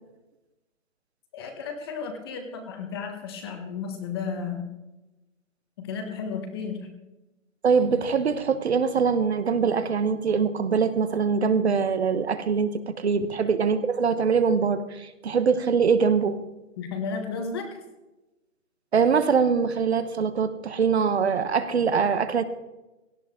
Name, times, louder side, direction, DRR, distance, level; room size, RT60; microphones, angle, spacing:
voice 1, 1.3-4.7 5.8-6.9 16.8-17.8, left 5 dB, 20° left, 5 dB, 1.2 m, -33 dB
voice 2, 7.6-16.4 18.9-22.4, right 6 dB, 55° right, 12 dB, 1.1 m, -23 dB
17.5 x 12.5 x 3.7 m, 1.0 s
hypercardioid pair, 165°, 40 cm